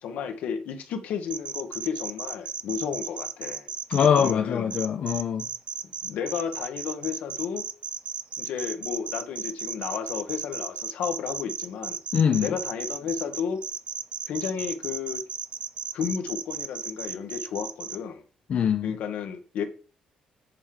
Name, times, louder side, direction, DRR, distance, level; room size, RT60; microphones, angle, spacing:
voice 1, 0.0-3.7 4.2-4.6 6.0-7.7 8.4-12.0 12.4-13.6 14.3-15.2 15.9-18.2 18.8-19.6, left 7 dB, 80° left, 1.1 m, -32 dB
sound 1, 1.3-4.3 4.7-18.0, right 6 dB, 45° right, 0.5 m, -34 dB
voice 2, 3.9-5.5 12.1-12.5 18.5-18.9, left 8 dB, 55° left, 0.6 m, -23 dB
8.1 x 3.6 x 4.8 m
cardioid pair, 100°, 3 cm